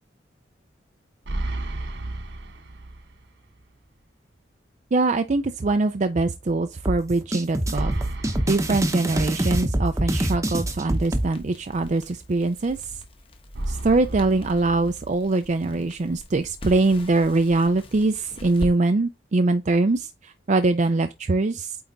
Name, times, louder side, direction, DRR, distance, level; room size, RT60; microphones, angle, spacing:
sound 1, 1.2-3.3 3.6-3.7 7.7-9.7 13.5-15.5, right 1 dB, 65° right, 1.0 m, -33 dB
voice 1, 4.9-7.9 8.5-13.0 13.7-21.8, right 2 dB, 40° right, 0.5 m, -23 dB
sound 2, 6.9-11.3, right 1 dB, 15° right, 0.8 m, -25 dB
Crackle, 10.9-18.7, equal, 30° left, 1.2 m, -41 dB
8.6 x 3.5 x 4.0 m
head